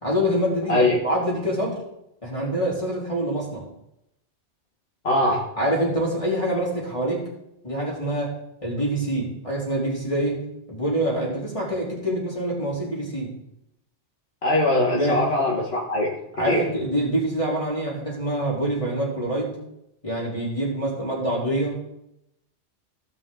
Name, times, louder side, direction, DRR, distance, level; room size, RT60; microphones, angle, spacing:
voice 1, 0.0-1.8 2.2-3.7 5.6-7.3 7.6-8.3 8.6-10.4 10.7-13.3 14.9-15.2 16.3-19.6 20.0-21.8, right 1 dB, 25° left, -5 dB, 3.4 m, -25 dB
voice 2, 5.0-5.4 14.4-16.1 16.5-16.6, left 1 dB, 60° left, -4 dB, 1.7 m, -21 dB
16.0 x 5.9 x 3.8 m, 0.83 s
omnidirectional pair, 1.2 m